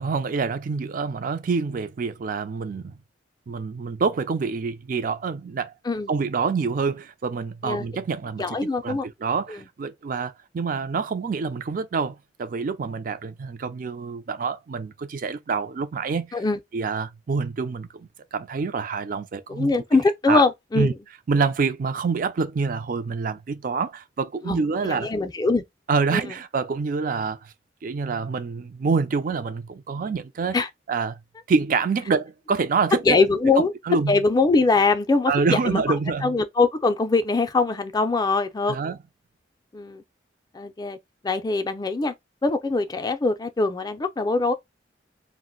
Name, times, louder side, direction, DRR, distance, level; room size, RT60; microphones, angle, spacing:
voice 1, 0.0-2.9 3.5-5.7 6.1-16.4 16.7-19.8 20.3-20.4 20.7-20.9 21.3-25.2 25.9-27.5 27.8-30.6 30.9-31.2 31.5-33.2 33.9-34.2 35.3-36.4 38.7-39.0, right 5 dB, 50° right, 0.4 m, -26 dB
voice 2, 8.4-9.1 9.5-9.6 16.3-16.6 19.5-20.9 24.5-25.6 26.1-26.2 30.5-30.7 33.0-33.7 34.1-35.8 36.2-38.8 39.7-40.0 40.5-41.0 41.2-42.1 42.4-44.5, left 3 dB, 20° left, 0.4 m, -22 dB
2.4 x 2.0 x 3.7 m
head